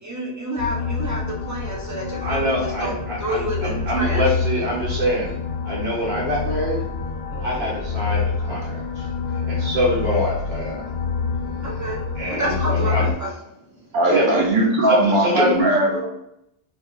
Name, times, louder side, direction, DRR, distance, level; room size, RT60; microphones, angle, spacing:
voice 1, 0.0-4.2 7.3-7.7 11.6-12.0 12.3-13.3, right 1 dB, 25° right, -4 dB, 0.4 m, -29 dB
sound 1, 0.6-13.1, left 5 dB, 55° left, 0.6 m, -27 dB
voice 2, 2.2-5.3 5.6-6.8 7.4-9.1 9.5-10.8 12.1-13.1 14.1-14.5 14.9-15.6, equal, 80° right, -6 dB, 1.1 m, -24 dB
voice 3, 13.9-16.0, right 1 dB, 55° right, -1 dB, 0.8 m, -19 dB
2.3 x 2.1 x 3.0 m, 0.81 s
omnidirectional pair, 1.1 m